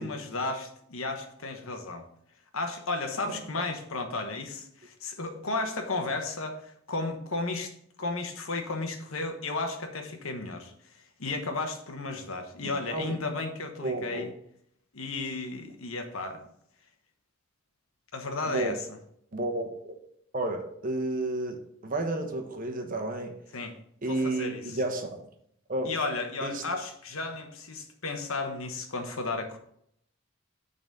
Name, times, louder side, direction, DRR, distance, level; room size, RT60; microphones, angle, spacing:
voice 1, 0.0-2.1 2.5-7.7 8.0-10.7 11.2-14.3 14.9-16.5 18.1-18.8 23.5-23.7 24.1-24.6 25.9-29.6, left 3 dB, 80° left, 5 dB, 1.2 m, -33 dB
voice 2, 3.3-3.6 12.6-13.2 13.8-14.3 18.5-18.8 19.3-19.9 20.3-23.3 24.0-25.3 25.7-25.9 26.4-26.6, right 2 dB, 40° right, 4 dB, 1.2 m, -32 dB
9.4 x 4.1 x 5.4 m, 0.70 s
head